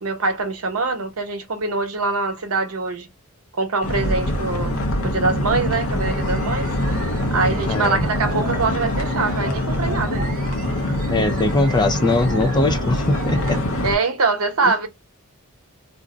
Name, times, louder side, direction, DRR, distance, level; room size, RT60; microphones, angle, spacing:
voice 1, 0.0-3.1 3.6-4.8 5.0-6.7 7.3-10.4 13.8-14.9, right 3 dB, 85° right, 0.9 m, -23 dB
sound 1, 3.8-13.9, left 1 dB, 70° left, 0.7 m, -24 dB
sound 2, 6.0-13.6, right 3 dB, 40° right, 0.4 m, -36 dB
voice 2, 7.7-8.0 11.1-13.6 14.6-14.7, left 2 dB, 20° left, 0.4 m, -21 dB
2.6 x 2.1 x 3.6 m
head